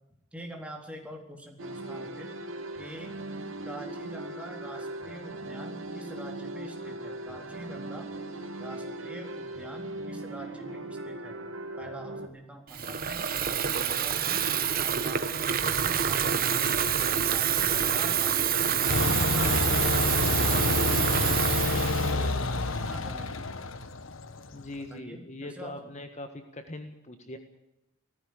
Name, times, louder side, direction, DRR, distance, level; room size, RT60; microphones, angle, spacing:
voice 1, 0.3-2.3 2.7-3.2 3.6-8.1 8.6-11.4 11.8-13.3 13.7-14.4 14.8-16.8 17.3-20.3 20.6-23.6 24.9-25.7, right 1 dB, 5° right, 2 dB, 3.8 m, -45 dB
sound 1, 1.6-12.3, right 1 dB, 80° right, 2.7 m, -39 dB
Water tap faucet / Fill (with liquid), 12.7-22.9, right 8 dB, 45° right, 1.3 m, -27 dB
sound 2, 18.9-24.6, left 3 dB, 80° left, 1.3 m, -28 dB
voice 2, 24.5-27.4, left 1 dB, 35° left, 7 dB, 1.6 m, -41 dB
18.0 x 15.0 x 9.8 m, 0.90 s
head